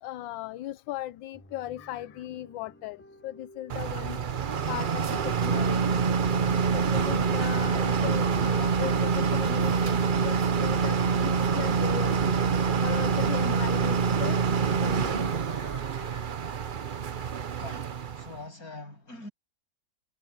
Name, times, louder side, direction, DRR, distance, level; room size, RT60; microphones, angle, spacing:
voice 1, 0.0-4.2 4.7-6.0 6.7-10.9 11.2-14.4 14.8-15.5 17.2-17.4, left 14 dB, 85° left, 1.3 m, -38 dB
sound 1, 1.3-13.0, equal, 5° left, 3.0 m, -52 dB
sound 2, 3.7-18.4, right 6 dB, 75° right, 0.4 m, -26 dB
sound 3, 7.5-16.4, right 1 dB, 10° right, 2.2 m, -52 dB
voice 2, 17.6-19.3, left 2 dB, 50° left, 7.8 m, -43 dB
omnidirectional pair, 2.0 m